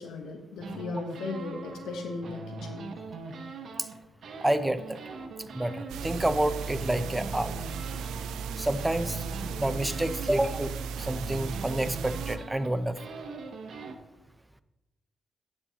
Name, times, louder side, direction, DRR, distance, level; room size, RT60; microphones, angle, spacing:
voice 1, 0.0-2.8, left 3 dB, 75° left, 4 dB, 1.0 m, -37 dB
sound 1, 0.6-4.0 4.2-13.9, right 3 dB, 60° right, 0.9 m, -41 dB
voice 2, 4.4-5.0 5.5-7.5 8.6-9.2 9.5-13.0, right 1 dB, 10° right, 12 dB, 0.5 m, -29 dB
sound 2, 5.9-12.4, right 6 dB, 80° right, 0.4 m, -36 dB
9.7 x 6.9 x 2.9 m, 1.0 s
cardioid pair, 75°, 0 cm